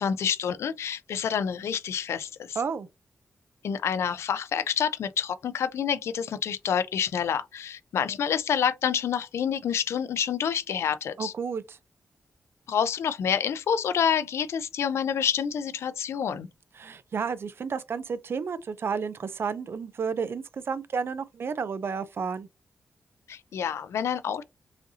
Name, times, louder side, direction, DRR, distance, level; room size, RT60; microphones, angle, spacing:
voice 1, 0.0-2.6 3.6-11.3 12.7-16.5 23.3-24.4, left 8 dB, 85° left, 0.4 m, -28 dB
voice 2, 2.6-2.9 11.2-11.8 16.8-22.5, right 6 dB, 60° right, 0.4 m, -31 dB
4.9 x 2.7 x 2.7 m
cardioid pair, 60°, 4 cm